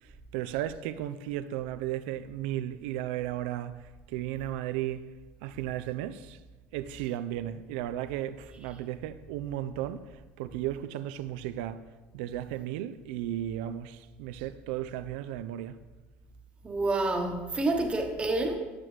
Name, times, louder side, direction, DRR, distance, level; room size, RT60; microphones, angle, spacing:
voice 1, 0.0-5.1 5.4-6.4 6.7-11.8 12.1-15.8, right 12 dB, 90° right, 0.3 m, -35 dB
voice 2, 16.6-18.6, right 2 dB, 20° right, 1.0 m, -28 dB
9.0 x 6.1 x 3.2 m
cardioid pair, 120°, 5 cm